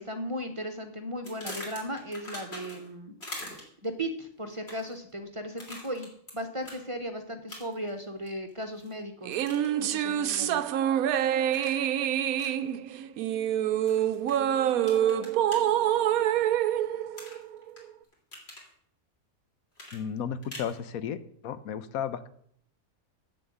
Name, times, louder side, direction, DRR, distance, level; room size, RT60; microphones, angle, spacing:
voice 1, 0.0-3.1 3.8-9.4 9.8-10.6, equal, 25° right, 6 dB, 0.9 m, -36 dB
sound 1, 1.2-2.9 3.2-3.9 4.5-5.0 5.6-6.3 6.6-6.8 7.5-7.9 8.3-8.9 9.3-9.8 10.3-10.6 11.5-11.8 12.4-12.5 13.9-14.3 14.8-15.6 17.2-17.8 18.1-18.7 19.8-20.7, left 1 dB, 45° left, 3.4 m, -43 dB
sound 2, 9.2-17.8, right 10 dB, 85° right, 1.1 m, -26 dB
voice 2, 19.9-21.2 21.4-22.3, left 8 dB, 85° left, 13 dB, 1.2 m, -33 dB
8.0 x 7.5 x 7.8 m, 0.66 s
omnidirectional pair, 1.5 m